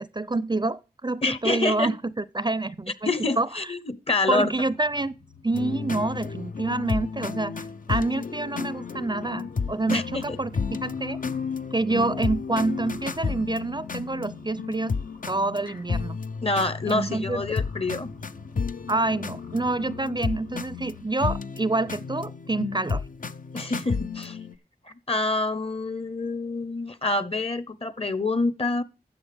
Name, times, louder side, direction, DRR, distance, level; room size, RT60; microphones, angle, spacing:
voice 1, 0.0-3.1 3.4-3.5 4.3-5.1 5.4-11.2 11.7-15.0 15.3-16.2 16.9-17.4 18.9-23.0, right 2 dB, 25° right, 0.5 m, -27 dB
voice 2, 1.2-1.9 3.0-4.5 9.9-10.4 16.4-18.1 23.5-24.4 25.1-28.8, left 3 dB, 35° left, 0.9 m, -27 dB
sound 1, 4.4-21.0, left 4 dB, 80° left, 1.2 m, -47 dB
sound 2, 5.5-24.6, left 5 dB, 55° left, 0.6 m, -32 dB
12.5 x 7.7 x 3.5 m
cardioid pair, 45°, 16 cm